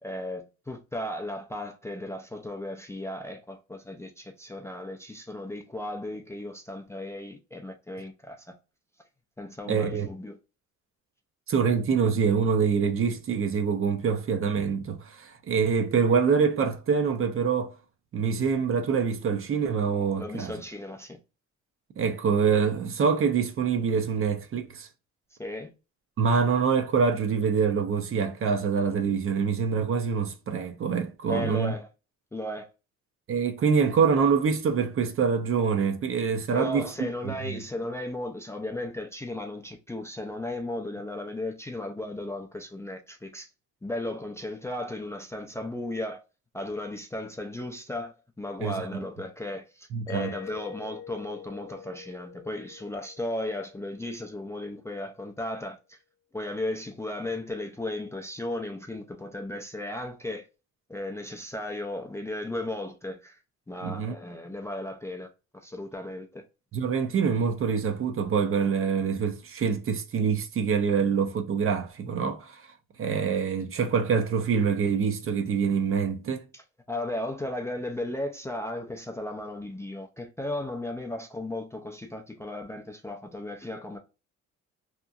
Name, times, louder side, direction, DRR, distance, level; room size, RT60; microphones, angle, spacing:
voice 1, 0.0-8.6 9.4-10.4 20.2-21.2 25.3-25.7 31.3-31.9 32.3-32.7 36.5-43.5 43.8-46.2 46.5-56.0 56.3-60.5 60.9-63.4 63.7-66.4 76.5-84.0, left 1 dB, 10° left, 0.4 m, -35 dB
voice 2, 9.7-10.1 11.5-17.7 18.1-20.5 22.0-24.9 26.2-31.7 33.3-36.9 37.2-37.6 48.6-49.0 49.9-50.3 63.8-64.2 66.7-72.6 73.0-76.4, right 6 dB, 45° right, 0.6 m, -25 dB
Mallet percussion, 50.1-54.7, left 9 dB, 65° left, 0.6 m, -45 dB
2.9 x 2.4 x 2.3 m
cardioid pair, 90°, 30 cm